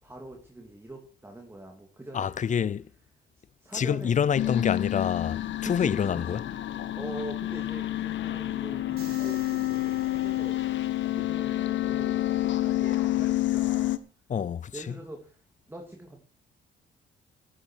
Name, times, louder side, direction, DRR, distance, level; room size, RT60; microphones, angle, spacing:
voice 1, 0.0-2.3 3.6-5.2 5.6-6.4 7.0-10.6 11.1-12.3 12.6-14.0 14.7-15.4 15.7-16.2, right 2 dB, 10° right, 2.8 m, -43 dB
voice 2, 2.1-2.9 3.7-6.4 14.3-15.0, left 8 dB, 40° left, 0.5 m, -27 dB
sound 1, 4.4-14.0, left 14 dB, 70° left, 1.1 m, -29 dB
sound 2, 9.0-11.2, right 6 dB, 50° right, 4.6 m, -51 dB
13.0 x 11.5 x 4.7 m
cardioid pair, 90°, 20 cm